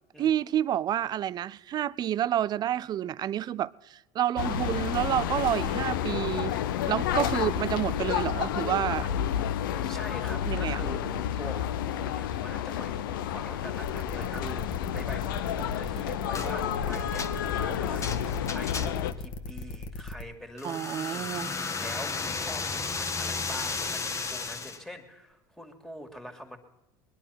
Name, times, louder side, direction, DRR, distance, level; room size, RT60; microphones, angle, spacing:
voice 1, 0.2-6.6 6.9-9.1 10.5-10.8 20.6-21.5, right 11 dB, 40° right, 0.4 m, -29 dB
sound 1, 4.4-19.1, left 10 dB, 80° left, 0.7 m, -30 dB
voice 2, 9.8-26.6, equal, 5° left, 2.3 m, -44 dB
sound 2, 13.8-20.2, left 3 dB, 55° left, 1.5 m, -38 dB
sound 3, 16.3-16.5 16.9-19.2 20.6-24.8, left 4 dB, 25° left, 1.3 m, -34 dB
21.0 x 11.0 x 5.8 m
hypercardioid pair, 85°, 11 cm